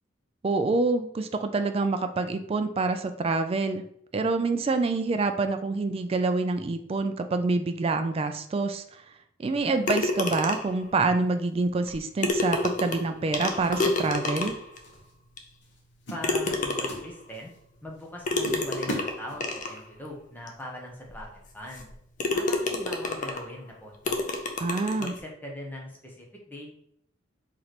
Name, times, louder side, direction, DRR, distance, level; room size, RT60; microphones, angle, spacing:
voice 1, 0.4-3.8 4.1-8.8 9.4-14.5 24.6-25.1, right 3 dB, 30° right, 7 dB, 0.3 m, -26 dB
sound 1, 9.9-10.8 11.9-12.0 12.2-14.8 15.4-15.5 16.2-17.2 18.3-19.8 20.5-20.6 21.1-21.2 21.7-21.9 22.2-23.5 24.1-25.2, left 2 dB, 40° left, 0.5 m, -29 dB
sound 2, 12.3-12.5 13.6-14.6 14.8-15.1 15.6-15.8 16.1-17.6 18.0-18.1 18.4-19.8, equal, 65° left, 1.0 m, -38 dB
voice 2, 16.1-17.5 17.8-21.9 22.3-24.2 25.0-26.8, left 1 dB, 10° left, -2 dB, 0.7 m, -41 dB
3.2 x 3.0 x 4.0 m, 0.70 s
head